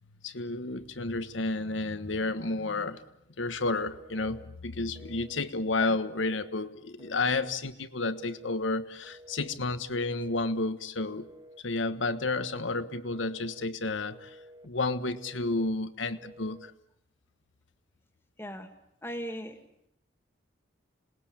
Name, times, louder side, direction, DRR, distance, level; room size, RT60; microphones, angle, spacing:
voice 1, 0.2-3.0 3.4-11.3 11.6-14.4 14.6-16.7, left 3 dB, 85° left, 12 dB, 1.3 m, -31 dB
Telephone, 3.9-4.5 5.0-5.5 6.0-6.5 7.0-7.6 8.0-8.6 9.0-9.6 10.1-10.6 11.1-11.6 12.1-12.7 13.1-13.7 14.1-14.7 15.2-15.7 16.2-16.7, equal, 20° right, 0.9 m, -52 dB
voice 2, 19.0-19.6, equal, 10° left, 8 dB, 1.9 m, -38 dB
27.5 x 20.5 x 8.8 m, 0.81 s
head